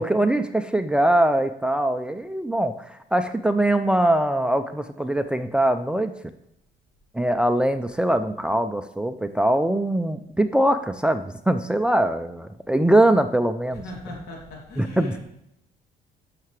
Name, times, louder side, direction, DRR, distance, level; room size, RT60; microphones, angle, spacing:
voice 1, 0.0-6.1 7.1-13.8 14.8-15.1, right 1 dB, 5° right, 10 dB, 0.4 m, -22 dB
voice 2, 13.7-15.3, left 1 dB, 70° left, -1 dB, 2.8 m, -40 dB
10.5 x 6.6 x 3.2 m, 0.79 s
cardioid pair, 110°, 17 cm